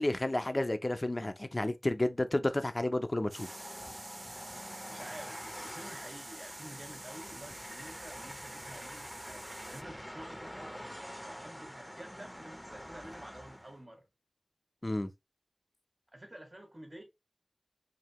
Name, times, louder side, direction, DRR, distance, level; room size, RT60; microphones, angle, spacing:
voice 1, 0.0-3.6 14.8-15.1, left 1 dB, 40° left, 0.6 m, -31 dB
Train, 3.3-13.8, equal, ahead, 0.8 m, -46 dB
sound 1, 3.3-9.8, right 2 dB, 55° right, 0.7 m, -49 dB
voice 2, 4.9-10.8 11.3-14.1 16.1-17.0, right 1 dB, 35° right, 1.7 m, -50 dB
4.9 x 2.7 x 3.0 m
wide cardioid pair, 45°, 0 cm